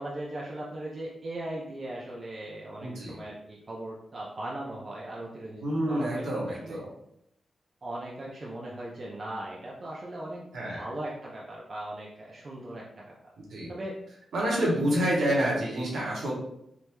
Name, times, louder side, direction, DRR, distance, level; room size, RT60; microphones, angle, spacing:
voice 1, 0.0-6.8 7.8-12.8 13.2-13.3 13.7-14.0 14.6-15.2, right 1 dB, 50° right, -4 dB, 0.7 m, -38 dB
voice 2, 2.8-3.2 5.6-6.9 10.5-10.8 13.5-13.7 14.3-16.3, right 1 dB, 75° right, -4 dB, 1.3 m, -28 dB
3.6 x 2.6 x 3.0 m, 0.77 s
supercardioid pair, 40°, 0 cm